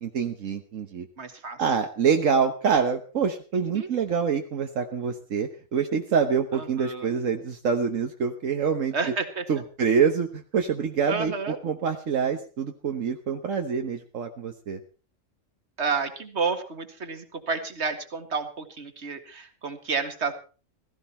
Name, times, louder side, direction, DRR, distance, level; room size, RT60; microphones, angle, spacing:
voice 1, 0.0-1.1 1.6-9.1 9.5-11.3 11.6-14.8, right 6 dB, 75° right, 5 dB, 1.5 m, -26 dB
voice 2, 1.2-1.6 3.5-3.9 6.5-7.1 8.9-9.5 11.1-11.6 15.8-20.3, right 5 dB, 55° right, 8 dB, 2.1 m, -30 dB
16.0 x 15.5 x 4.4 m, 0.37 s
omnidirectional pair, 1.3 m